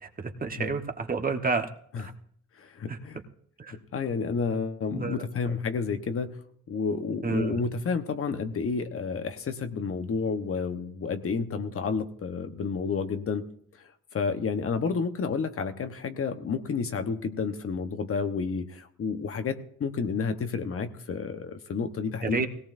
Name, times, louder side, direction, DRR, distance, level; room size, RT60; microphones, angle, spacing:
voice 1, 0.0-1.7 2.0-2.1 2.9-3.0 3.6-3.8 4.9-5.2 7.2-7.6 22.2-22.5, right 4 dB, 30° right, 5 dB, 1.3 m, -30 dB
voice 2, 2.6-3.2 3.7-6.4 6.7-13.5 13.8-22.5, left 5 dB, 45° left, 8 dB, 1.2 m, -30 dB
18.0 x 17.5 x 2.7 m, 0.65 s
cardioid pair, 90°, 30 cm